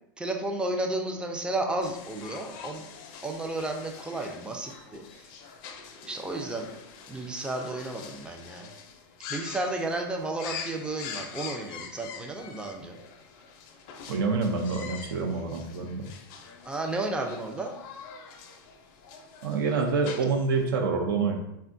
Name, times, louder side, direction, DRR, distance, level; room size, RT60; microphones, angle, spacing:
voice 1, 0.2-2.8 3.2-5.3 6.0-6.7 7.1-8.7 9.3-13.0 16.7-17.8, right 2 dB, 10° right, 3 dB, 0.4 m, -32 dB
sound 1, 1.8-20.6, left 6 dB, 55° left, 0.5 m, -44 dB
voice 2, 14.1-16.0 19.4-21.4, right 4 dB, 75° right, 2 dB, 0.5 m, -27 dB
3.5 x 2.2 x 2.5 m, 0.84 s
hypercardioid pair, 115°, 12 cm